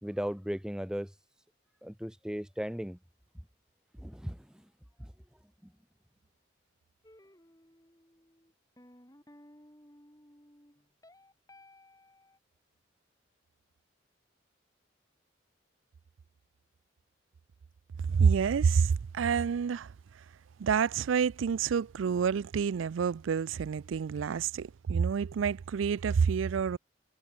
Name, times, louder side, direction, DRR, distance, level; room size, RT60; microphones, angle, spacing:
voice 1, 0.0-1.1 1.8-3.0 4.0-4.4 5.0-5.1, equal, 5° right, 0.8 m, -36 dB
sound 1, 7.0-12.4, left 1 dB, 20° left, 6.0 m, -58 dB
voice 2, 18.1-19.9 20.6-26.8, right 6 dB, 90° right, 0.4 m, -28 dB
head